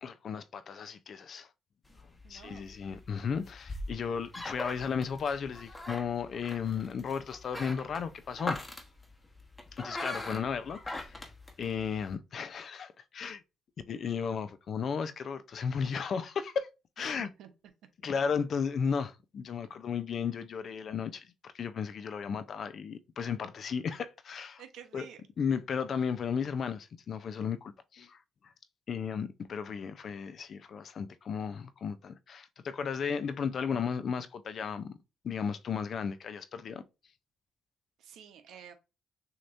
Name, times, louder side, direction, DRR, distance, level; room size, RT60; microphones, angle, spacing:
voice 1, 0.0-1.5 2.3-8.6 9.7-11.2 11.6-13.4 13.9-16.7 17.0-17.3 18.0-24.6 24.9-25.1 25.4-28.2 28.9-35.0 35.2-36.8, left 6 dB, 55° left, 0.6 m, -34 dB
sound 1, 1.9-12.1, left 2 dB, 15° left, 1.2 m, -42 dB
voice 2, 2.2-2.8 17.0-17.5 24.6-25.2 38.0-38.7, right 9 dB, 80° right, 0.9 m, -50 dB
6.4 x 3.0 x 2.6 m
cardioid pair, 90°, 0 cm